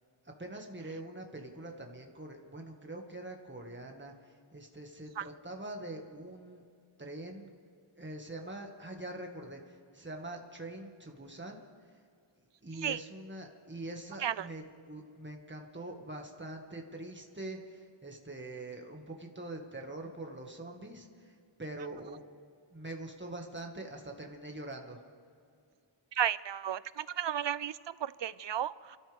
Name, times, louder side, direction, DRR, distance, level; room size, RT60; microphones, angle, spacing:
voice 1, 0.2-6.6 7.0-7.5 8.0-12.0 12.4-22.3 22.7-25.0, right 2 dB, 25° right, 2 dB, 2.0 m, -44 dB
voice 2, 26.1-29.0, right 10 dB, 65° right, 18 dB, 0.5 m, -33 dB
29.5 x 13.5 x 3.6 m, 2.4 s
wide cardioid pair, 70°, 48 cm